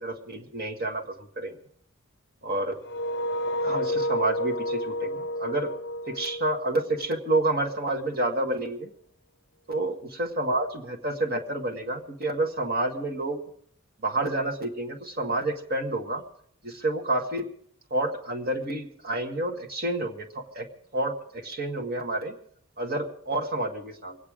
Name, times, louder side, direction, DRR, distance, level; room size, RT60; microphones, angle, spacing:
voice 1, 0.0-1.5 2.4-2.8 3.6-5.7 6.1-8.9 9.7-13.4 14.0-16.2 16.6-17.4 17.9-20.7 20.9-22.3 22.8-24.2, right 2 dB, 50° right, 3 dB, 1.9 m, -29 dB
sound 1, 2.8-7.7, equal, 60° left, 0.6 m, -31 dB
24.0 x 9.2 x 5.0 m, 0.64 s
head